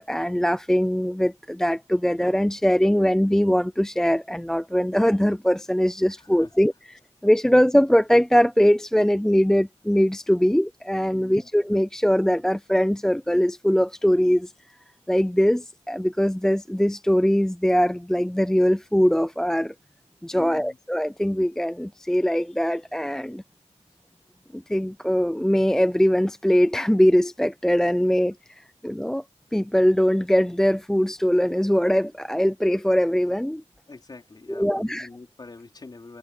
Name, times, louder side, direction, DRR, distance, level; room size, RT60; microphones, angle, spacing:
voice 1, 0.0-14.5 15.1-19.7 20.2-23.4 24.5-29.2 29.5-33.6 34.5-35.1, equal, 5° left, 0.6 m, -21 dB
voice 2, 6.1-6.5 11.1-11.5 20.3-20.8 33.9-36.2, left 3 dB, 35° left, 4.6 m, -44 dB
wide cardioid pair, 95°, 12 cm